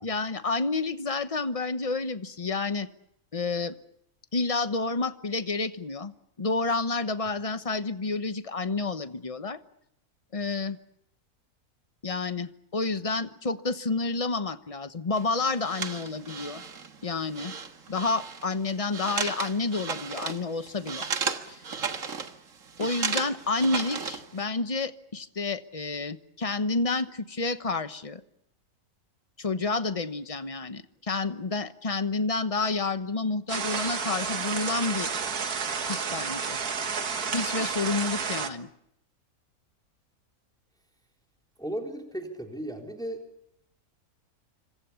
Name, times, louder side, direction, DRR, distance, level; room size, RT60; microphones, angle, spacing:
voice 1, 0.0-2.9 3.3-3.7 4.3-6.1 6.4-9.6 10.3-10.8 12.0-16.6 17.0-17.5 17.9-21.0 21.5-21.6 22.8-28.2 29.4-35.1 35.9-36.6 37.3-38.7, left 3 dB, 25° left, 11 dB, 1.0 m, -29 dB
sound 1, 15.1-24.4, right 5 dB, 60° right, 1.9 m, -35 dB
sound 2, 33.5-38.5, right 6 dB, 85° right, 2.1 m, -31 dB
voice 2, 41.6-43.2, right 1 dB, 5° left, 2 dB, 3.8 m, -35 dB
27.0 x 25.0 x 7.1 m, 0.77 s
omnidirectional pair, 1.6 m